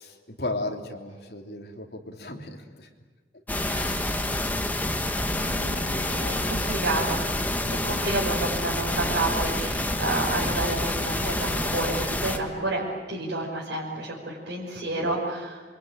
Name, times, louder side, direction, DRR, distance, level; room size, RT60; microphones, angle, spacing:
voice 1, 0.0-2.9 3.7-4.1 5.3-6.5 7.6-7.9 15.0-15.2, left 2 dB, 60° left, 1 dB, 3.2 m, -37 dB
sound 1, 3.5-12.4, left 1 dB, 10° left, 1.4 m, -28 dB
voice 2, 3.6-4.1 5.6-7.2 7.8-12.8 13.1-15.7, right 2 dB, 80° right, -4 dB, 5.5 m, -30 dB
27.5 x 23.5 x 9.1 m, 1.4 s
head